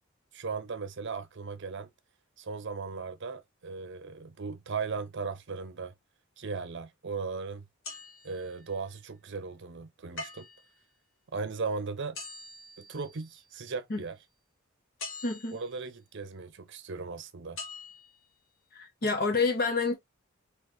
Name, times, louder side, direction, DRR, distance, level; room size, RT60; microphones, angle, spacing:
voice 1, 0.3-1.9 2.4-5.9 6.4-7.7 8.2-10.5 11.3-12.2 12.8-14.2 15.5-17.6, right 4 dB, 60° right, 0.6 m, -37 dB
sound 1, 7.8-8.8 10.2-10.8 12.1-13.5 15.0-15.8 17.6-18.3 18.9-19.0, left 3 dB, 75° left, 1.3 m, -44 dB
voice 2, 15.2-15.6 18.7-19.9, left 4 dB, 50° left, 0.8 m, -28 dB
3.9 x 2.9 x 3.0 m
head